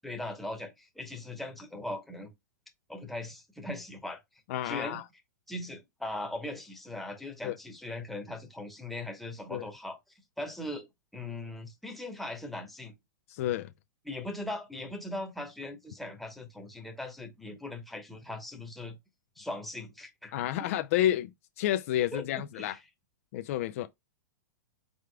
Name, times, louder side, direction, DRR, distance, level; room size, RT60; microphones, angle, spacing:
voice 1, 0.0-2.3 2.9-4.2 4.6-5.0 5.5-10.0 10.4-10.9 11.1-12.9 14.0-19.0 19.4-20.3 22.1-22.2 22.6-22.8, left 1 dB, ahead, 1.0 m, -39 dB
voice 2, 4.5-5.0 7.4-7.6 9.5-9.7 13.3-13.7 20.3-22.8 23.3-23.9, left 12 dB, 50° left, 0.4 m, -30 dB
4.8 x 3.6 x 2.2 m
hypercardioid pair, 140°, 10 cm